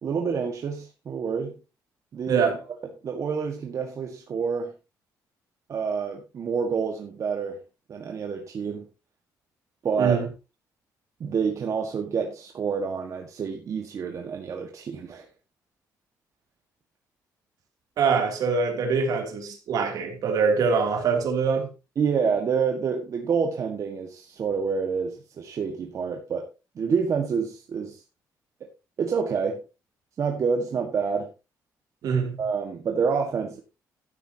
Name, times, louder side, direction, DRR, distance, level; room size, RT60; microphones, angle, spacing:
voice 1, 0.0-1.5 2.1-2.5 3.0-4.7 5.7-7.6 7.9-8.9 9.8-10.3 11.2-15.3 22.0-26.5 26.8-28.0 28.6-28.7 29.0-29.6 30.2-31.3 32.4-33.6, right 6 dB, 50° right, 1.7 m, -28 dB
voice 2, 2.3-2.6 10.0-10.3 18.0-21.7 32.0-32.4, right 5 dB, 70° right, 3.0 m, -24 dB
13.0 x 9.6 x 2.9 m
cardioid pair, 115°, 7 cm